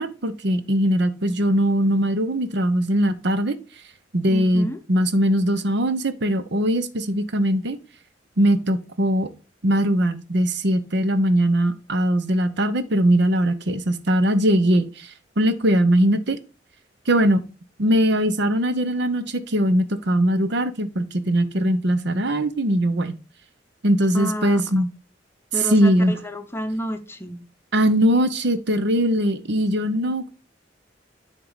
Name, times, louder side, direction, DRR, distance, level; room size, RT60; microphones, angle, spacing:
voice 1, 0.0-3.5 4.1-7.8 8.4-9.3 9.6-16.4 17.1-17.4 17.8-23.2 23.8-24.9 25.7-26.1 27.7-30.3, equal, 65° right, 0.9 m, -21 dB
voice 2, 4.3-4.8 24.1-24.6 25.5-27.4, equal, 15° left, 0.7 m, -30 dB
10.0 x 3.7 x 4.0 m
head